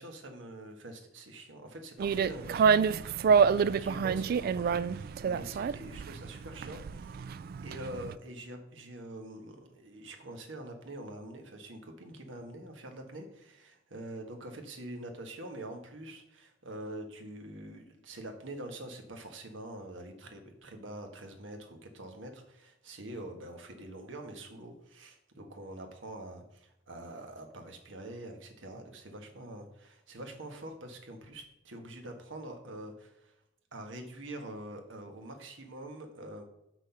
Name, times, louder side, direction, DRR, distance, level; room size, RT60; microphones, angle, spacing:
voice 1, 0.0-3.1 3.5-7.3 7.6-33.3 33.7-36.4, right 1 dB, 75° right, 4 dB, 1.5 m, -45 dB
sound 1, 2.0-8.1, right 6 dB, 50° right, 0.3 m, -28 dB
6.3 x 6.1 x 5.8 m, 0.86 s
head